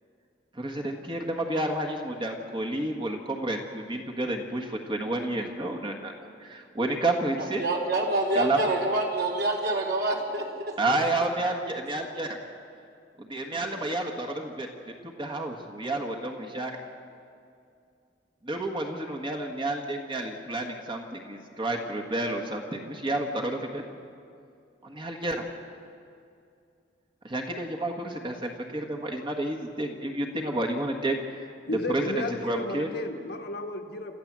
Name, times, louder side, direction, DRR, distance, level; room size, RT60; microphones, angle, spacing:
voice 1, 0.5-6.1 6.4-7.6 8.3-8.6 10.8-12.4 13.2-14.7 15.0-16.8 18.4-23.8 24.8-25.5 27.2-31.5 31.9-32.9, right 1 dB, 25° right, 2 dB, 1.6 m, -30 dB
voice 2, 7.6-10.4, right 2 dB, 60° right, 0 dB, 3.7 m, -26 dB
voice 3, 31.6-34.1, left 2 dB, 60° left, 3 dB, 1.4 m, -33 dB
28.5 x 14.0 x 7.5 m, 2.4 s
head